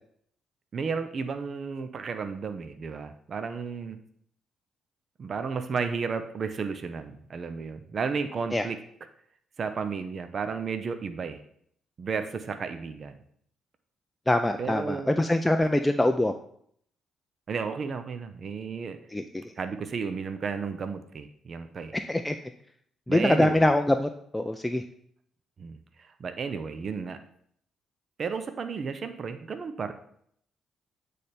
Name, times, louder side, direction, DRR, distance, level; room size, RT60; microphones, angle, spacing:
voice 1, 0.7-4.0 5.2-8.8 9.6-11.4 12.0-13.2 14.6-15.2 17.5-19.0 19.6-22.0 23.1-23.7 25.6-27.2 28.2-29.9, right 5 dB, 45° right, 9 dB, 0.5 m, -33 dB
voice 2, 14.3-16.3 19.1-19.2 22.1-22.3 23.1-24.8, left 1 dB, 10° left, 6 dB, 0.3 m, -24 dB
8.3 x 3.3 x 4.2 m, 0.66 s
cardioid pair, 90°, 0 cm